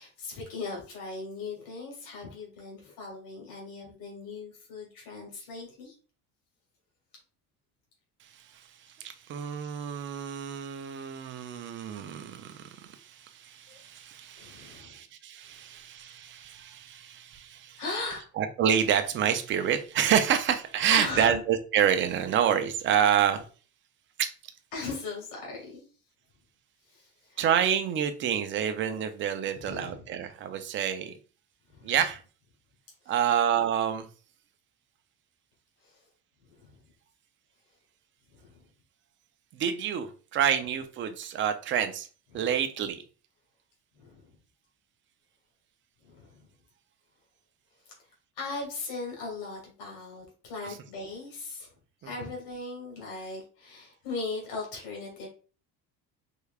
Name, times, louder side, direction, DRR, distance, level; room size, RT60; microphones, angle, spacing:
voice 1, 0.0-6.0 13.7-13.8 14.4-15.0 17.8-18.3 20.9-21.4 24.7-25.9 26.9-27.5 29.5-30.1 31.7-31.9 33.0-33.1 35.8-36.0 36.4-36.8 38.3-38.6 42.3-42.5 44.0-44.3 46.0-46.5 47.8-48.1 48.4-51.7 52.0-55.3, left 3 dB, 85° left, 2.0 m, -38 dB
voice 2, 9.0-17.8 18.4-23.4 24.2-24.3 27.4-31.1 31.8-32.2 33.1-34.1 39.5-42.1 42.3-43.0, right 9 dB, 35° right, 0.5 m, -28 dB
4.6 x 3.3 x 2.3 m
cardioid pair, 160°, 34 cm